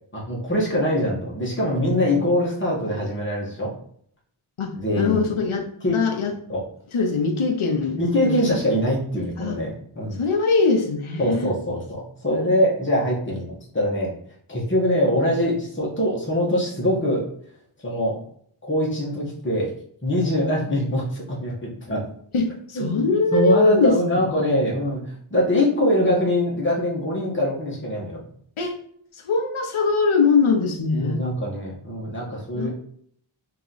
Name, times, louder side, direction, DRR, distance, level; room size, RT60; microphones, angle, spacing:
voice 1, 0.1-3.8 4.8-5.3 5.8-6.0 6.5-6.6 7.9-10.2 11.2-14.1 14.5-17.2 17.8-18.2 18.6-19.7 20.0-22.0 22.7-23.0 23.3-25.0 25.3-28.2 31.0-32.7, left 1 dB, 25° left, -4 dB, 1.1 m, -23 dB
voice 2, 4.6-5.7 5.9-6.3 6.9-8.6 9.4-9.6 10.2-11.5 22.3-23.9 28.6-28.8 29.1-31.2 32.6-32.7, left 4 dB, 75° left, 3 dB, 0.7 m, -22 dB
3.0 x 2.8 x 3.9 m, 0.65 s
wide cardioid pair, 45°, 50 cm